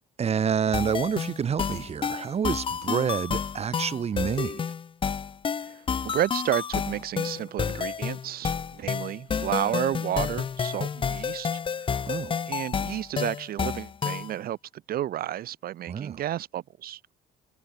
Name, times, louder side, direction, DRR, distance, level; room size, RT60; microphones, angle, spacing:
voice 1, 0.2-4.6 12.1-12.4 15.9-16.2, right 7 dB, 40° right, 1.8 m, -28 dB
sound 1, 0.7-14.3, left 6 dB, 30° left, 0.9 m, -30 dB
voice 2, 5.5-11.9 12.5-17.0, right 12 dB, 60° right, 2.0 m, -31 dB
cardioid pair, 110°, 17 cm